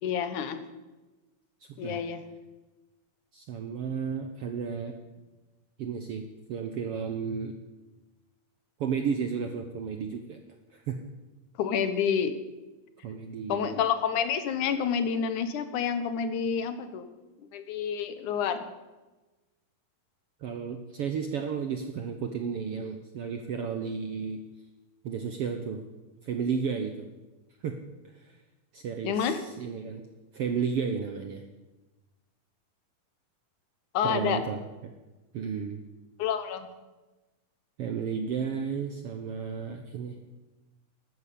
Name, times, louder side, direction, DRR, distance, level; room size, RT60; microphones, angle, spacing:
voice 1, 0.0-0.6 1.8-2.2 11.6-12.3 13.5-17.1 17.5-18.7 29.0-29.4 33.9-34.4 36.2-36.7, left 7 dB, 70° left, 10 dB, 2.5 m, -28 dB
voice 2, 1.7-2.0 3.3-5.0 5.8-6.2 6.5-7.6 8.8-10.4 10.7-11.0 13.0-13.8 20.4-24.4 25.0-25.8 26.2-27.1 27.6-27.7 28.1-28.4 28.7-30.0 30.3-31.4 34.0-34.6 35.3-35.8 37.8-40.2, right 6 dB, 70° right, 6 dB, 1.4 m, -33 dB
13.0 x 12.5 x 8.5 m, 1.1 s
omnidirectional pair, 3.8 m